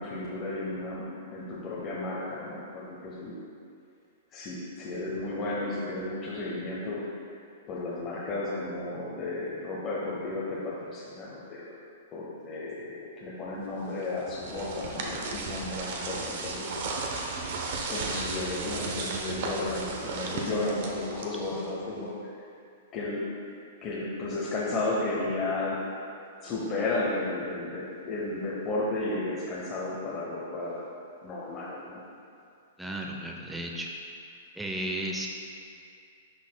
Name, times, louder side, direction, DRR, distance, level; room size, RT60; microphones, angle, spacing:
voice 1, 0.0-3.4 4.3-7.1 7.7-11.6 12.1-16.7 17.9-22.1 22.9-23.2 23.8-25.8 26.4-30.8 31.2-32.0, left 2 dB, 30° left, -6 dB, 0.8 m, -33 dB
sound 1, 14.0-21.8, right 3 dB, 60° right, 0.8 m, -35 dB
voice 2, 32.8-33.9 34.2-35.3, right 1 dB, 5° right, -1 dB, 0.6 m, -34 dB
11.5 x 4.1 x 2.2 m, 2.5 s
hypercardioid pair, 140°, 0 cm